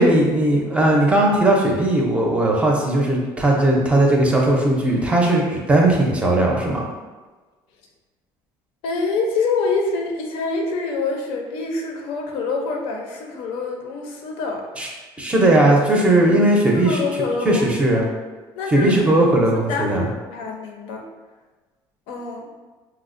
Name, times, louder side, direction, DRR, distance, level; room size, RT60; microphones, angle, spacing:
voice 1, 0.0-6.8 14.8-14.9 15.2-17.0 17.4-18.0 18.7-20.1, right 1 dB, 15° right, -1 dB, 0.5 m, -17 dB
voice 2, 8.8-14.7 16.7-17.7 17.9-18.1 18.6-20.0 20.2-21.0 22.1-22.5, left 4 dB, 80° left, 2 dB, 0.5 m, -26 dB
4.3 x 2.0 x 2.5 m, 1.3 s
cardioid pair, 145°, 9 cm